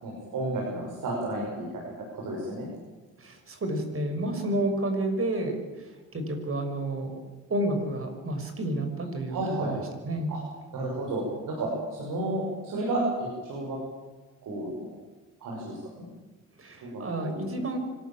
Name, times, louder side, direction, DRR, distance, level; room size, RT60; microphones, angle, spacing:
voice 1, 0.0-1.7 2.2-2.7 9.3-9.7 10.3-10.4 10.7-13.8 14.4-14.9 15.4-16.0 16.8-17.5, right 2 dB, 75° right, -2 dB, 6.3 m, -32 dB
voice 2, 3.2-7.2 7.5-9.8 10.0-10.3 16.6-17.8, right 1 dB, 45° right, 5 dB, 6.0 m, -30 dB
25.0 x 14.0 x 8.9 m, 1.2 s
cardioid pair, 70°, 32 cm